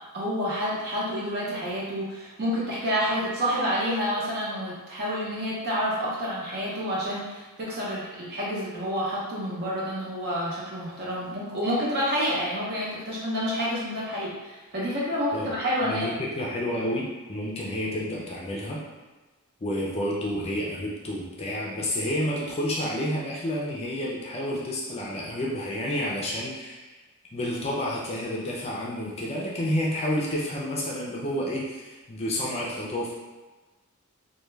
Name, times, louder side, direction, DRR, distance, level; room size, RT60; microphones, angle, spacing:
voice 1, 0.1-14.3 14.7-16.1, equal, 50° right, -6 dB, 0.8 m, -28 dB
voice 2, 15.8-18.8 19.6-26.9 27.3-33.1, equal, 30° left, -4 dB, 0.4 m, -30 dB
2.2 x 2.2 x 3.1 m, 1.2 s
head